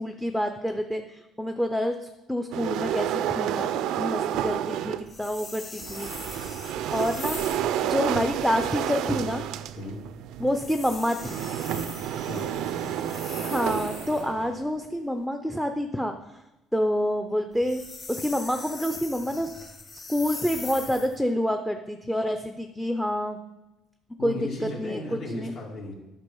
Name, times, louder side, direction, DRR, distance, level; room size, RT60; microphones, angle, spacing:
voice 1, 0.0-3.7 4.0-6.1 6.9-9.5 10.4-11.4 13.4-16.1 16.7-17.8 18.1-19.5 20.1-23.4 24.2-24.4 24.8-25.0 25.3-25.5, equal, ahead, 6 dB, 0.6 m, -28 dB
sound 1, 2.5-5.1 5.8-14.7, right 10 dB, 70° right, 0.5 m, -30 dB
sound 2, 5.1-7.7 10.5-14.3 17.5-21.2, left 3 dB, 30° left, 1.9 m, -41 dB
voice 2, 12.2-13.0 24.2-25.9, left 2 dB, 55° left, -3 dB, 2.3 m, -36 dB
11.5 x 5.8 x 5.5 m, 0.96 s
cardioid pair, 130°, 0 cm